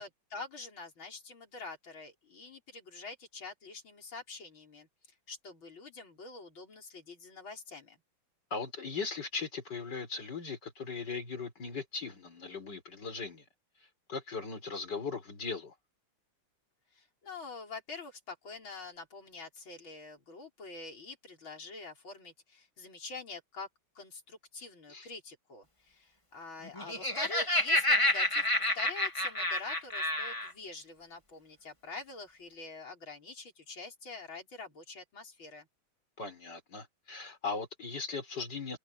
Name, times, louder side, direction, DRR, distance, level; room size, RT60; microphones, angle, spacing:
voice 1, 0.0-4.9 5.3-8.0 16.9-23.7 23.9-35.7, left 3 dB, 70° left, 6.2 m, -46 dB
voice 2, 8.5-13.4 14.1-15.7 24.9-25.1 36.2-38.8, left 4 dB, 55° left, 5.0 m, -38 dB
Laughter, 26.7-30.5, left 1 dB, 15° left, 3.4 m, -29 dB
omnidirectional pair, 2.3 m